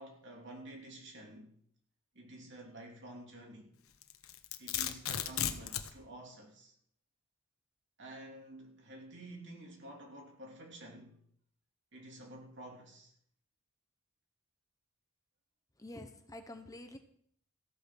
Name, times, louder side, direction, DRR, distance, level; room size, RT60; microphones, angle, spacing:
voice 1, 0.0-1.5 2.1-3.7 4.6-6.7 8.0-11.2 11.9-13.1, right 1 dB, 55° right, 3.3 m, -50 dB
Domestic sounds home sounds, 4.0-5.9, left 10 dB, 75° left, 1.1 m, -35 dB
voice 2, 15.8-17.0, left 1 dB, 15° left, 1.0 m, -48 dB
15.0 x 8.6 x 6.3 m
head